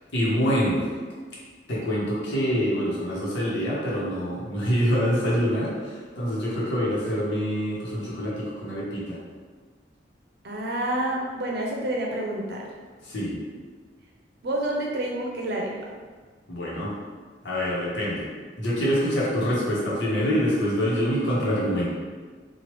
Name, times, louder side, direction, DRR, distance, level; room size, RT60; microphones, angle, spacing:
voice 1, 0.1-0.8 1.7-9.2 13.0-13.4 16.5-16.9 17.4-18.3 18.6-21.9, equal, 90° left, -6 dB, 0.9 m, -25 dB
voice 2, 10.4-12.7 14.4-15.7, right 1 dB, 65° right, -1 dB, 0.6 m, -28 dB
3.1 x 2.3 x 3.0 m, 1.5 s
head